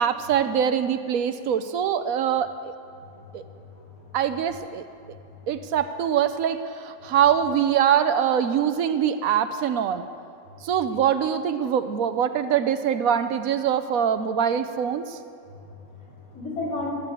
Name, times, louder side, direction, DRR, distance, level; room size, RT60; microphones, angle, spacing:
voice 1, 0.0-2.7 3.3-3.4 4.1-4.8 5.5-10.1 10.6-15.2, right 8 dB, 75° right, 11 dB, 1.1 m, -23 dB
voice 2, 3.1-4.1 7.0-7.1 10.6-10.7 15.4-16.9, left 2 dB, 70° left, -7 dB, 4.8 m, -36 dB
15.5 x 8.4 x 8.4 m, 2.3 s
omnidirectional pair, 1.5 m